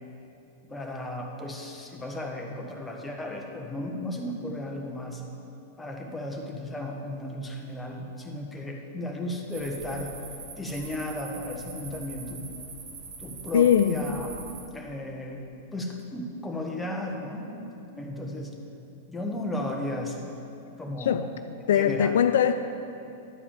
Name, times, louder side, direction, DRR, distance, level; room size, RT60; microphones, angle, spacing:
voice 1, 0.6-5.2 5.8-10.1 10.6-12.5 13.2-14.4 14.7-15.4 15.7-18.5 19.1-20.3 20.8-21.3 21.7-22.1, left 1 dB, 10° left, 1 dB, 1.3 m, -35 dB
sound 1, 9.5-14.7, right 4 dB, 60° right, 1.5 m, -43 dB
voice 2, 13.5-14.0 21.0-21.2 21.7-22.5, left 9 dB, 70° left, 9 dB, 0.3 m, -21 dB
11.5 x 4.9 x 7.1 m, 2.7 s
hypercardioid pair, 100°, 0 cm